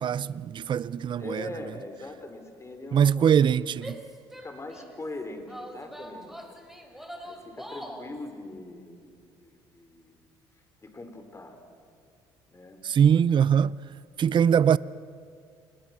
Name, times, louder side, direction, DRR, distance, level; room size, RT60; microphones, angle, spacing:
voice 1, 0.0-1.5 2.9-4.0 12.8-13.8 14.2-14.8, right 8 dB, 40° right, 0.6 m, -22 dB
voice 2, 1.2-3.2 4.4-9.1 9.4-10.2 10.8-11.6 12.5-12.8, left 2 dB, 25° left, 4.7 m, -41 dB
Female speech woman speaking / Yell, 3.7-5.0 5.5-8.1, equal, ahead, 3.7 m, -43 dB
29.5 x 21.0 x 6.2 m
hypercardioid pair, 65°, 12 cm